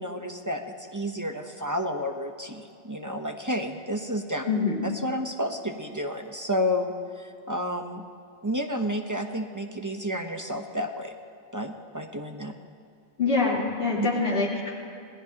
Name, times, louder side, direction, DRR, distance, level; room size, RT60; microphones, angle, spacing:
voice 1, 0.0-4.4 4.8-8.0 8.4-11.1 11.5-12.5 14.0-14.1, equal, 20° right, 3 dB, 0.8 m, -31 dB
voice 2, 4.4-4.9 13.2-14.8, left 4 dB, 80° left, -6 dB, 3.9 m, -25 dB
26.5 x 18.0 x 2.9 m, 2.5 s
omnidirectional pair, 1.1 m